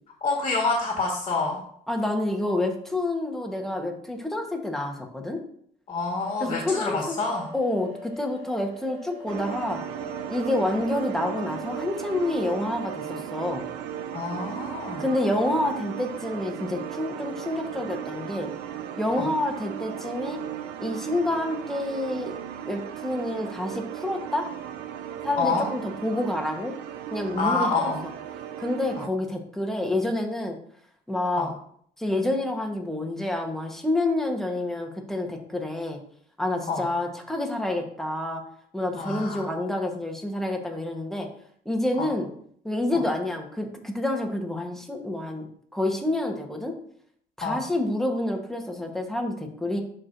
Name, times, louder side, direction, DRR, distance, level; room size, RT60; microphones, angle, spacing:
voice 1, 0.2-1.6 5.9-7.5 14.1-15.0 19.2-19.3 25.4-25.7 27.4-28.0 31.4-31.5 36.7-36.8 39.0-39.5 42.0-42.1 42.9-43.0 47.4-47.6, left 3 dB, 35° left, 0 dB, 1.7 m, -27 dB
voice 2, 1.9-5.4 6.4-7.2 7.5-9.8 10.3-13.6 15.0-18.5 19.0-20.4 20.8-22.3 22.6-24.5 25.2-26.7 27.1-27.9 28.6-30.6 31.1-31.5 32.0-36.0 36.4-38.4 38.7-41.3 41.6-42.3 42.6-45.5 45.7-46.8 47.4-49.8, left 1 dB, ahead, 2 dB, 1.2 m, -28 dB
sound 1, 6.2-12.3, left 1 dB, 45° right, 1.5 m, -43 dB
sound 2, 9.3-29.1, right 10 dB, 90° right, 0.5 m, -36 dB
11.0 x 4.5 x 2.6 m, 0.64 s
cardioid pair, 110°, 17 cm